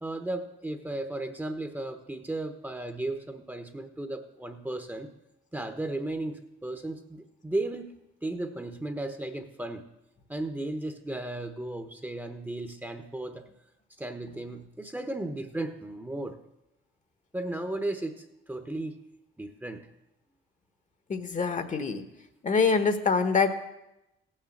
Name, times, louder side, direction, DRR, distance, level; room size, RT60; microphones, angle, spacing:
voice 1, 0.0-5.1 5.5-7.9 8.2-9.9 10.3-13.5 14.0-16.4 17.3-19.0 19.4-19.9, right 2 dB, 10° right, 7 dB, 1.0 m, -35 dB
voice 2, 21.1-22.0 22.4-23.6, left 5 dB, 40° left, 9 dB, 1.2 m, -25 dB
15.5 x 6.6 x 7.3 m, 0.91 s
cardioid pair, 90°, 20 cm